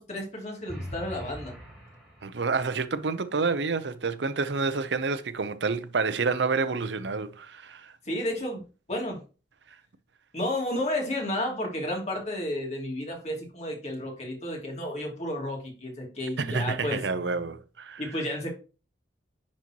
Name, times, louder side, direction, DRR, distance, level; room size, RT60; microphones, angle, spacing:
voice 1, 0.0-1.5 8.0-9.2 10.3-17.0 18.0-18.5, left 1 dB, 40° left, 2.8 m, -32 dB
sound 1, 0.7-2.7, equal, 5° left, 3.3 m, -41 dB
voice 2, 2.2-7.9 16.4-18.0, right 4 dB, 85° right, 0.7 m, -28 dB
10.5 x 4.3 x 2.9 m
head